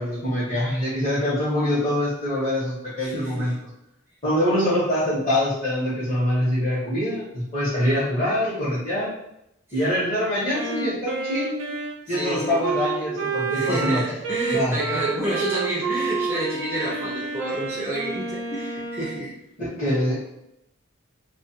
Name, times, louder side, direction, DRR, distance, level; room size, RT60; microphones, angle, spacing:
voice 1, 0.0-3.6 4.2-9.1 9.7-11.6 12.1-14.0 14.5-14.7 19.6-20.2, left 1 dB, 35° left, -12 dB, 0.9 m, -24 dB
voice 2, 3.0-3.5 12.1-12.6 13.5-19.3 19.9-20.0, right 1 dB, 10° right, -6 dB, 0.3 m, -29 dB
Wind instrument woodwind instrument, 10.5-19.2, right 4 dB, 80° right, 0.5 m, -29 dB
2.3 x 2.1 x 2.6 m, 0.80 s
head